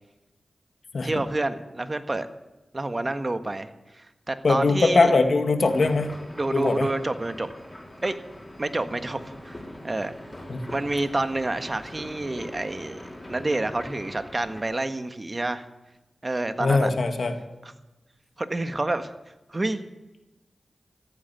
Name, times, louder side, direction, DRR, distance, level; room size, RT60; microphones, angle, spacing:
voice 1, 1.0-2.3 2.7-5.1 6.3-7.5 8.0-8.2 8.6-9.6 9.8-10.1 10.7-13.0 13.3-15.6 16.2-16.9 17.6-17.7 18.4-19.1 19.5-19.8, right 2 dB, 40° right, 9 dB, 1.5 m, -28 dB
voice 2, 4.4-6.1 6.5-6.9 10.5-10.6 16.6-17.3, left 3 dB, 70° left, 6 dB, 1.9 m, -21 dB
sound 1, 5.6-14.6, left 1 dB, 20° left, 5.6 m, -42 dB
15.0 x 9.3 x 9.6 m, 1.0 s
cardioid pair, 40°, 0 cm